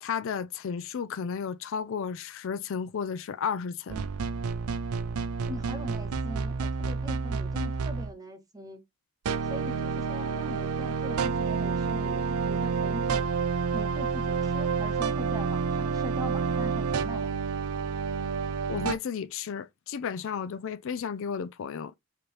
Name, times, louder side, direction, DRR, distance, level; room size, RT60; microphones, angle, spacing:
voice 1, 0.0-4.1 18.7-21.9, left 6 dB, 60° left, 0.4 m, -33 dB
sound 1, 3.9-8.1 9.3-18.9, right 5 dB, 85° right, 0.5 m, -29 dB
voice 2, 5.5-8.8 9.5-13.4 13.7-17.3, equal, 15° right, 0.9 m, -41 dB
4.9 x 3.0 x 3.1 m
head